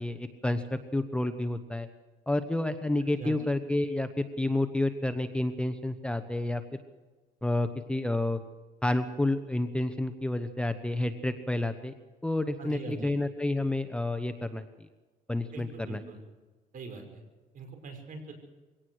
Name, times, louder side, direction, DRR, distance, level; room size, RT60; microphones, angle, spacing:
voice 1, 0.0-1.9 2.3-6.8 7.4-8.4 8.8-11.9 12.2-14.9 15.3-16.0, left 1 dB, 5° left, 9 dB, 1.0 m, -30 dB
voice 2, 12.6-13.1 15.5-16.2 16.7-17.2 17.5-18.3, right 4 dB, 55° right, 5 dB, 5.7 m, -41 dB
23.0 x 18.0 x 6.4 m, 1.2 s
cardioid pair, 110°, 17 cm